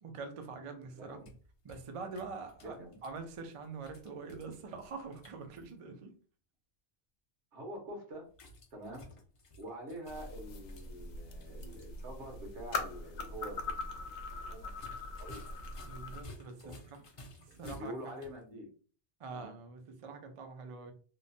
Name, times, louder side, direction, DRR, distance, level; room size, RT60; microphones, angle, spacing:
voice 1, 0.0-1.2 1.6-6.1 15.8-17.0 17.4-18.1 19.2-20.9, right 4 dB, 60° right, 0.3 m, -45 dB
voice 2, 0.9-1.3 2.6-3.0 7.5-8.3 8.7-9.1 9.5-14.1 14.4-14.9 15.2-15.4 16.6-16.8 17.5-18.7 19.3-19.5, equal, 80° right, 1.3 m, -46 dB
sound 1, 1.0-5.7 8.3-12.1 12.4-12.5 14.7-18.4, left 1 dB, 45° left, 0.4 m, -55 dB
sound 2, 10.1-16.2, left 3 dB, 80° left, 0.9 m, -42 dB
3.0 x 2.1 x 2.6 m
omnidirectional pair, 1.2 m